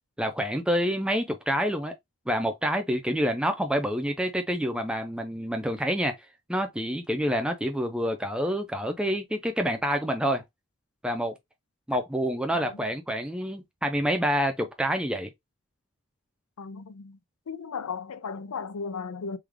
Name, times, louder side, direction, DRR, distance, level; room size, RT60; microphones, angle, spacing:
voice 1, 0.2-1.9 2.3-6.1 6.5-10.4 11.0-11.3 11.9-15.3, equal, 5° right, 0.4 m, -27 dB
voice 2, 16.6-17.2 17.5-19.4, left 5 dB, 85° left, 0.5 m, -36 dB
3.3 x 2.3 x 3.5 m
head